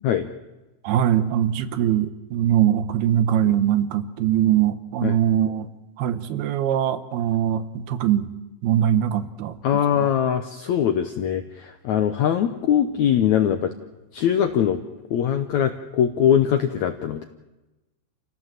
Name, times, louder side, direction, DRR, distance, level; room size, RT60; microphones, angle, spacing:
voice 1, 0.8-5.7 6.0-8.3 8.6-10.1, right 10 dB, 80° right, 11 dB, 3.0 m, -22 dB
voice 2, 9.6-13.7 14.1-14.8 15.1-17.2, left 9 dB, 75° left, 8 dB, 1.7 m, -22 dB
28.5 x 17.0 x 7.6 m, 1.1 s
omnidirectional pair, 4.5 m